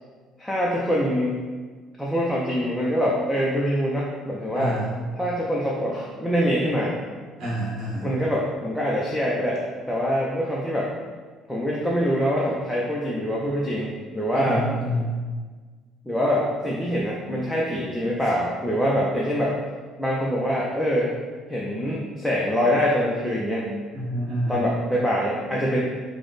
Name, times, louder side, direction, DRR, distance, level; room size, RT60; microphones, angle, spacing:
voice 1, 0.4-1.4 2.0-4.8 5.2-7.0 8.0-9.6 9.9-10.9 11.5-14.6 16.1-19.6 20.0-21.1 21.5-23.7 24.5-25.8, equal, ahead, -5 dB, 0.4 m, -24 dB
voice 2, 4.5-5.0 7.4-8.1 14.3-15.2 23.9-24.7, equal, 40° right, -9 dB, 1.5 m, -28 dB
5.0 x 2.0 x 3.8 m, 1.5 s
cardioid pair, 170°, 0 cm